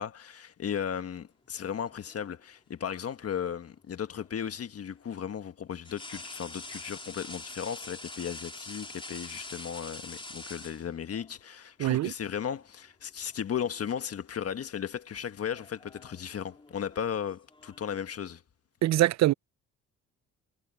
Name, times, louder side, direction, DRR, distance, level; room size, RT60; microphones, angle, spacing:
voice 1, 0.0-18.4, left 8 dB, 50° left, 1.4 m, -36 dB
sound 1, 1.5-2.4 4.2-4.3 5.8-11.3 12.5-12.7 13.1-13.9 14.1-14.5 15.4-18.0, left 2 dB, 15° left, 3.9 m, -45 dB
voice 2, 11.8-12.1 18.8-19.3, right 15 dB, 60° right, 0.5 m, -23 dB
cardioid pair, 90°, 30 cm